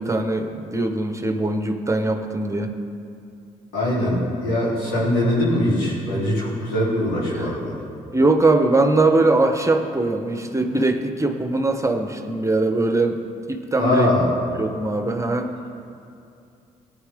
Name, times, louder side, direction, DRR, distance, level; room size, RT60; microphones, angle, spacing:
voice 1, 0.0-2.7 7.3-7.5 8.1-13.2 13.5-14.2 14.6-15.5, right 2 dB, 15° right, 5 dB, 1.1 m, -21 dB
voice 2, 3.7-7.8 13.8-14.3, left 1 dB, 85° left, -7 dB, 3.3 m, -22 dB
18.0 x 9.6 x 3.7 m, 2.6 s
hypercardioid pair, 50°, 18 cm